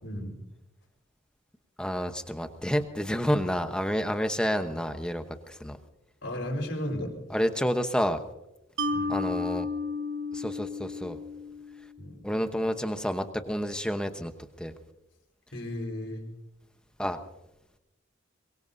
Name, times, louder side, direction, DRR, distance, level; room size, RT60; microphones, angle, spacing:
voice 1, 0.0-0.3 6.2-7.1 8.9-9.2 12.0-12.2 15.5-16.3, left 1 dB, 65° left, 1 dB, 4.7 m, -34 dB
voice 2, 1.8-5.8 7.3-8.2 9.1-9.7 10.3-11.2 12.2-14.3 14.6-14.7 17.0-17.2, equal, 5° left, 7 dB, 1.0 m, -29 dB
Mallet percussion, 8.8-12.1, left 2 dB, 80° right, 1.3 m, -33 dB
23.0 x 23.0 x 2.7 m, 0.92 s
head